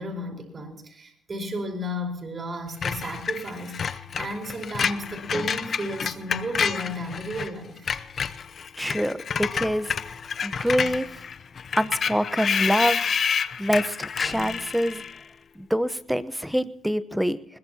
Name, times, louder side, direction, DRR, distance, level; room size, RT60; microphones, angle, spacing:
voice 1, 0.0-7.9, equal, 30° right, 4.6 m, -33 dB
Screech, 2.8-7.5 7.8-15.2, left 6 dB, 40° left, 0.7 m, -29 dB
voice 2, 8.8-9.9 10.4-11.1 11.7-13.0 13.6-15.0 15.6-17.6, equal, ahead, 1.0 m, -25 dB
21.0 x 20.5 x 2.9 m
cardioid pair, 115°, 0 cm